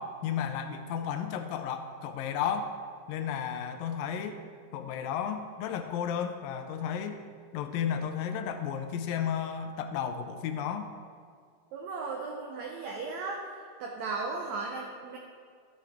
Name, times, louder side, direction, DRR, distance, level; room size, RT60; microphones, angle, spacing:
voice 1, 0.0-2.8 3.1-4.4 4.7-7.2 7.5-10.9, left 8 dB, 80° left, 7 dB, 2.2 m, -33 dB
voice 2, 11.7-13.4 13.8-15.2, right 4 dB, 85° right, 1 dB, 1.5 m, -36 dB
13.0 x 6.9 x 3.5 m, 2.1 s
omnidirectional pair, 4.2 m